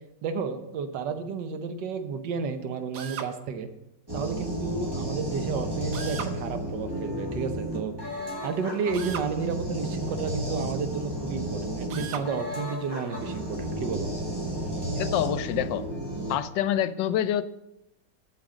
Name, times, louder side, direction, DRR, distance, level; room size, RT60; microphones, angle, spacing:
voice 1, 0.2-3.7 4.1-8.0 8.4-14.1, right 5 dB, 80° right, 8 dB, 1.5 m, -32 dB
Drill, 2.9-3.3 5.9-6.4 8.9-9.3 11.9-12.3, right 7 dB, 60° right, 1.0 m, -37 dB
sound 1, 4.1-16.4, right 1 dB, 15° right, 1.6 m, -32 dB
voice 2, 15.0-15.9 16.3-17.4, left 11 dB, 85° left, 13 dB, 1.3 m, -26 dB
8.5 x 6.3 x 6.3 m, 0.88 s
omnidirectional pair, 1.9 m